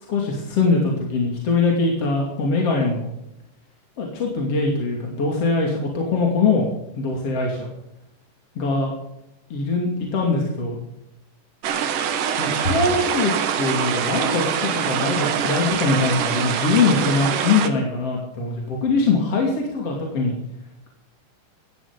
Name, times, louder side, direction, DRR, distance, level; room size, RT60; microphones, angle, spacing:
voice 1, 0.1-3.1 4.0-6.7 7.0-7.7 8.6-8.9 9.5-10.8 12.4-20.4, left 3 dB, 50° left, -1 dB, 3.6 m, -22 dB
sound 1, 11.6-17.7, right 8 dB, 80° right, 2.9 m, -24 dB
16.5 x 13.5 x 5.2 m, 0.84 s
omnidirectional pair, 3.7 m